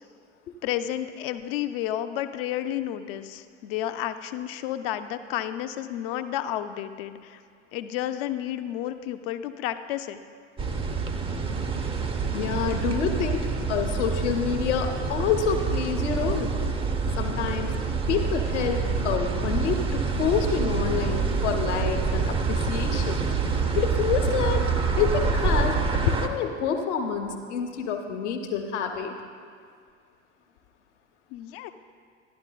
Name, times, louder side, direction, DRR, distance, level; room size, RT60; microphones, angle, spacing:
voice 1, 0.6-7.4 7.7-10.2 31.3-31.7, left 12 dB, 50° left, 10 dB, 0.5 m, -31 dB
sound 1, 10.6-26.3, right 5 dB, 15° right, 0.5 m, -27 dB
voice 2, 12.3-16.5 17.2-17.7 18.1-23.3 23.8-29.1, left 7 dB, 70° left, 4 dB, 1.0 m, -28 dB
11.5 x 11.0 x 2.3 m, 2.1 s
figure-of-eight pair, 75°, 37 cm